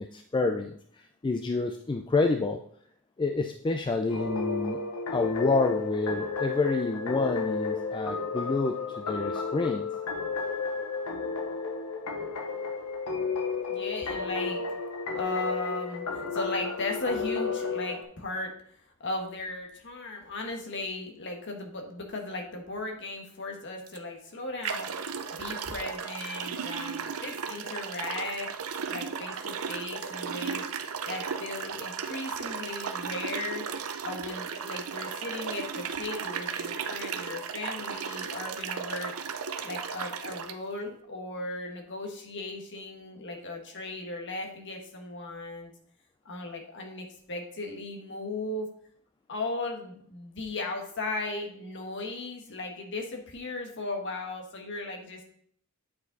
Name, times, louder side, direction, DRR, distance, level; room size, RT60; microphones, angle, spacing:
voice 1, 0.0-2.6 3.2-4.8 5.1-9.9, left 3 dB, 20° left, 5 dB, 0.3 m, -28 dB
sound 1, 4.1-18.0, left 4 dB, 90° left, 0.8 m, -32 dB
voice 2, 13.7-14.6 15.1-18.5 19.0-24.9 25.3-28.5 28.8-30.6 31.1-33.6 34.0-39.1 39.6-45.7 46.2-48.7 49.3-55.2, left 2 dB, 55° left, 3 dB, 1.4 m, -36 dB
sound 2, 23.9-24.0 24.6-40.6, right 6 dB, 65° right, 0.6 m, -35 dB
8.5 x 5.0 x 4.0 m, 0.63 s
head